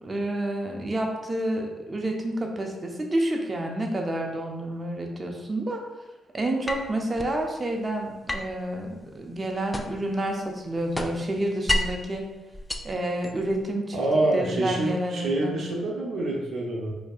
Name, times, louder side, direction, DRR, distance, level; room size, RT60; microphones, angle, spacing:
voice 1, 0.0-5.8 6.3-12.3 12.8-14.0 14.3-15.6, right 1 dB, 35° right, 2 dB, 0.7 m, -29 dB
sound 1, 6.7-7.4 8.3-10.1 10.5-12.1 12.5-13.6, left 1 dB, 15° left, 0.4 m, -31 dB
voice 2, 13.9-16.9, right 2 dB, 65° right, -2 dB, 0.8 m, -26 dB
4.3 x 2.7 x 2.5 m, 1.1 s
supercardioid pair, 55°, 0 cm